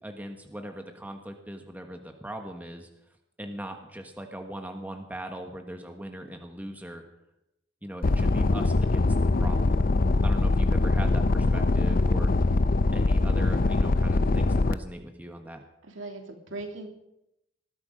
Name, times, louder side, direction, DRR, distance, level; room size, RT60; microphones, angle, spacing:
voice 1, 0.0-2.9 3.4-7.0 7.8-9.1 9.3-9.9 10.2-12.6 12.9-15.6, right 1 dB, 10° right, 4 dB, 1.3 m, -40 dB
sound 1, 8.0-14.7, left 2 dB, 45° left, 0.6 m, -23 dB
voice 2, 11.9-12.2 15.8-16.9, right 2 dB, 70° right, 3 dB, 2.9 m, -40 dB
20.0 x 13.0 x 5.1 m, 0.86 s
head